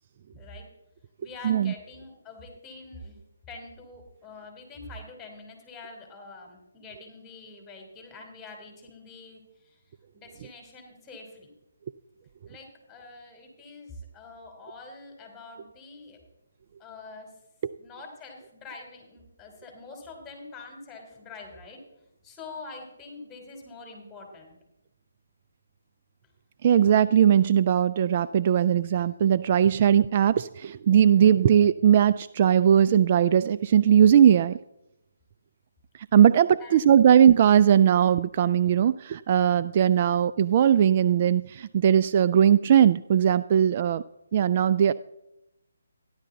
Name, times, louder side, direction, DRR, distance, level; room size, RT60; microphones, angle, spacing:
voice 1, 0.3-0.7 1.2-3.2 3.5-9.8 10.1-11.5 12.4-16.2 16.8-17.3 17.8-21.8 22.2-24.6 36.6-37.1, left 3 dB, 10° left, 2 dB, 3.2 m, -45 dB
voice 2, 26.6-34.6 36.1-44.0 44.3-44.9, right 9 dB, 35° right, 14 dB, 0.3 m, -19 dB
14.0 x 11.0 x 3.9 m, 0.89 s
figure-of-eight pair, 150°, 0 cm